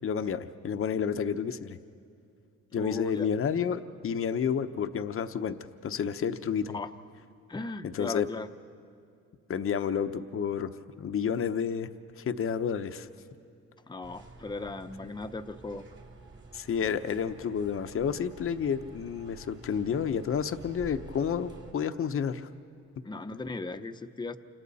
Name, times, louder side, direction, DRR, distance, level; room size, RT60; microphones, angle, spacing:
voice 1, 0.0-1.8 2.7-5.6 5.8-6.8 7.8-8.3 9.5-11.9 12.2-13.1 16.5-22.5, left 7 dB, 45° left, 9 dB, 0.9 m, -30 dB
voice 2, 2.8-3.3 6.7-6.9 7.5-8.5 13.9-15.8 23.0-24.4, left 3 dB, 15° left, 7 dB, 0.9 m, -37 dB
sound 1, 14.0-21.7, right 3 dB, 40° right, 2.7 m, -50 dB
28.5 x 27.0 x 4.2 m, 2.5 s
cardioid pair, 90°, 30 cm